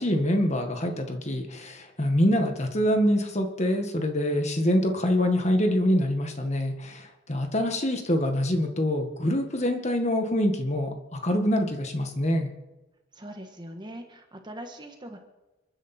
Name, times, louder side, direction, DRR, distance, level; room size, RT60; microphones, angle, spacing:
voice 1, 0.0-12.5, equal, 35° left, 5 dB, 1.8 m, -25 dB
voice 2, 13.1-15.2, right 1 dB, 20° right, 5 dB, 1.6 m, -41 dB
30.0 x 10.0 x 4.5 m, 1.1 s
head